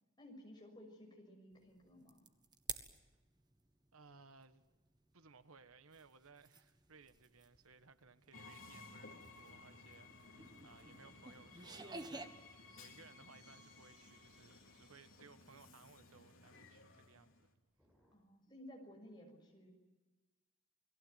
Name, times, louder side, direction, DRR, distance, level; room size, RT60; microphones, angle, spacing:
voice 1, 0.2-2.2 18.1-19.7, left 1 dB, 20° left, 6.3 m, -56 dB
sound 1, 1.7-3.0 3.3-12.3, right 4 dB, 20° right, 1.5 m, -51 dB
voice 2, 3.9-4.6 5.1-17.5, right 4 dB, 85° right, 1.3 m, -62 dB
Train, 8.3-17.5, left 3 dB, 65° left, 3.6 m, -58 dB
Sink (filling or washing), 10.2-18.3, equal, 5° right, 7.1 m, -74 dB
29.0 x 19.0 x 9.3 m
head